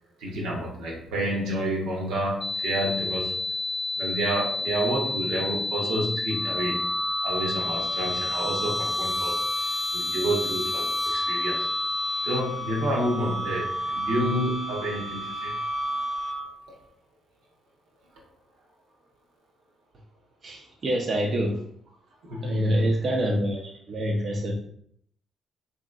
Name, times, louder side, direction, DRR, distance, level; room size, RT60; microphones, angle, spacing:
voice 1, 0.2-3.3 4.0-6.9 7.2-9.4 9.9-11.7 12.2-15.6 22.2-23.0, right 1 dB, 80° right, -2 dB, 0.8 m, -29 dB
sound 1, 2.4-12.4, left 3 dB, 45° left, 0.3 m, -30 dB
sound 2, 6.3-16.7, right 1 dB, ahead, 0.6 m, -32 dB
voice 2, 20.4-21.6 22.4-24.5, equal, 50° right, 0 dB, 0.5 m, -26 dB
2.9 x 2.6 x 2.4 m, 0.67 s
supercardioid pair, 60°, 0 cm